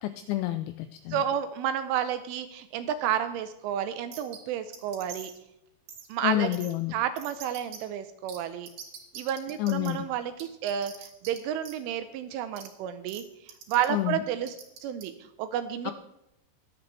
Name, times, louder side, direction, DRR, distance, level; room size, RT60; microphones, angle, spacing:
voice 1, 0.0-1.2 6.2-6.9 9.6-10.1 13.9-14.2 15.9-16.0, left 14 dB, 85° left, 10 dB, 2.7 m, -29 dB
voice 2, 1.1-5.3 6.1-6.5 6.9-8.7 9.2-14.6 14.8-15.9, right 10 dB, 80° right, 10 dB, 3.0 m, -31 dB
sound 1, 4.1-4.4 4.7-5.4 5.9-6.1 6.5-6.7 7.2-7.8 8.3-8.4 8.7-9.9 10.4-11.4 11.6-11.8 12.6-12.7 13.1-13.2 13.5-13.9 14.5-15.0, right 8 dB, 65° right, 3.6 m, -43 dB
23.0 x 7.9 x 3.4 m, 0.86 s
omnidirectional pair, 6.0 m